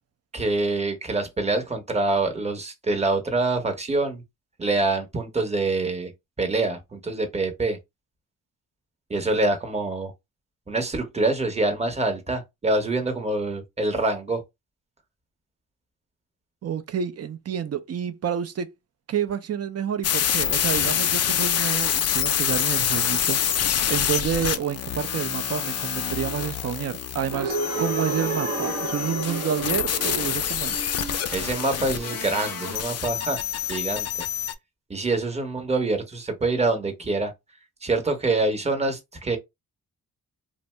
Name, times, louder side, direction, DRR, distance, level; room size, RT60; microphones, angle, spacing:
voice 1, 0.3-4.2 4.6-6.1 6.4-7.8 9.1-10.1 10.7-14.4 31.3-33.4 33.7-34.1 34.9-37.3 37.8-39.4, right 2 dB, 20° right, 0.8 m, -25 dB
voice 2, 16.6-18.7 19.1-23.4 23.9-30.8, right 8 dB, 45° right, 0.5 m, -29 dB
sound 1, 20.0-34.5, left 9 dB, 45° left, 0.4 m, -26 dB
sound 2, 27.3-33.2, right 3 dB, 85° right, 0.9 m, -32 dB
2.6 x 2.0 x 3.2 m
cardioid pair, 80°, 34 cm